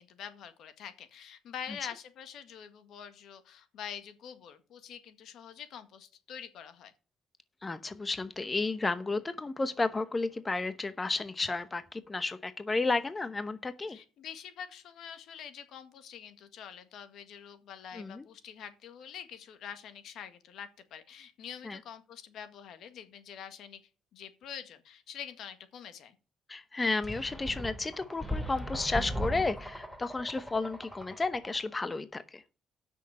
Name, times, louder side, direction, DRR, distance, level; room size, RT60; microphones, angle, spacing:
voice 1, 0.0-6.9 13.9-23.8 24.1-26.2, left 8 dB, 75° left, 10 dB, 1.8 m, -46 dB
voice 2, 7.6-14.0 17.9-18.2 21.6-21.8 26.5-32.4, left 3 dB, 25° left, 12 dB, 0.9 m, -32 dB
sound 1, 27.0-31.6, equal, 5° left, 2.5 m, -38 dB
8.2 x 6.5 x 7.6 m, 0.34 s
cardioid pair, 90°, 0 cm